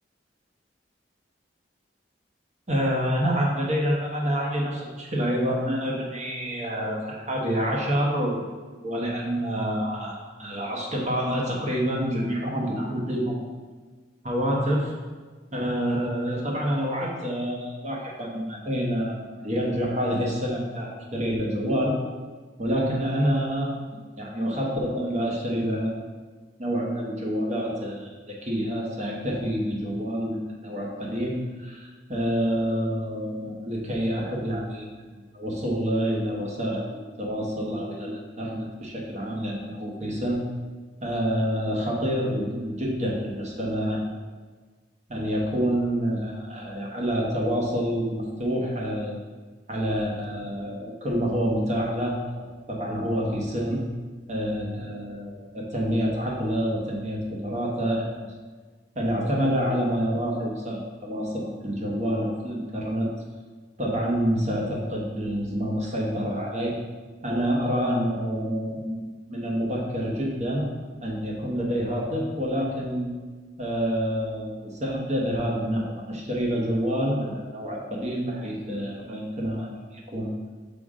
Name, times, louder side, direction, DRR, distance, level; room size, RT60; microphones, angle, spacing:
voice 1, 2.7-8.4 8.8-13.5 14.2-14.9 15.5-21.9 22.6-23.8 24.2-26.0 26.6-40.4 41.0-44.1 45.1-49.1 49.7-53.8 54.3-58.3 58.9-63.1 63.8-66.7 67.2-70.6 71.0-73.1 73.6-80.3, equal, 40° right, -3 dB, 1.2 m, -27 dB
6.0 x 3.7 x 4.9 m, 1.4 s
head